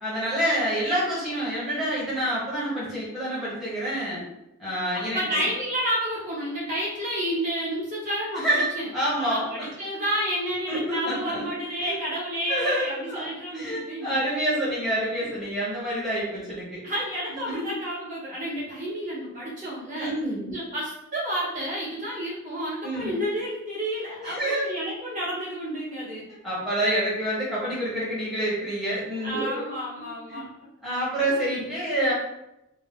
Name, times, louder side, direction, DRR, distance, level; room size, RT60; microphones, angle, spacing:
voice 1, 0.0-4.2 4.6-5.4 8.3-9.7 10.6-11.4 11.8-12.0 12.5-13.3 13.5-16.8 17.5-17.7 20.0-20.5 22.8-23.2 24.2-24.6 26.4-29.7 30.3-30.5 30.8-32.1, right 1 dB, ahead, -9 dB, 0.8 m, -27 dB
voice 2, 4.9-8.9 9.2-14.3 16.8-20.1 20.5-26.2 29.2-30.7, equal, 35° right, -7 dB, 0.9 m, -30 dB
2.7 x 2.0 x 3.5 m, 0.86 s
head